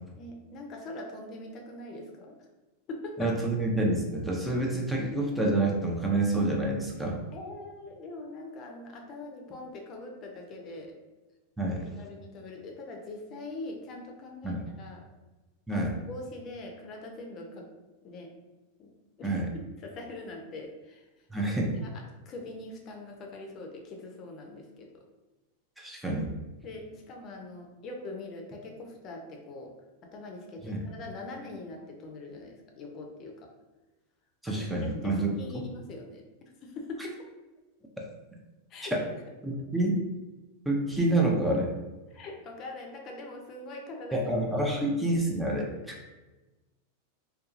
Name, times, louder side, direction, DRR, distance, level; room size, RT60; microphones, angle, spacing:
voice 1, 0.1-2.5 2.9-3.3 7.0-10.9 12.0-15.0 15.7-17.7 18.0-18.3 18.8-18.9 19.2-25.0 26.6-29.7 30.1-33.5 34.5-36.2 36.6-37.2 38.7-39.2 42.1-44.3, left 2 dB, 40° left, 1 dB, 0.5 m, -42 dB
voice 2, 3.2-7.2 11.6-11.8 14.4-14.6 15.7-15.9 19.2-19.5 21.3-21.7 25.8-26.3 30.6-30.8 34.4-35.3 38.9-39.0 39.4-40.0 40.7-41.7 44.1-46.0, right 2 dB, 5° right, -2 dB, 0.5 m, -28 dB
2.7 x 2.2 x 2.5 m, 1.1 s
hypercardioid pair, 105°, 0 cm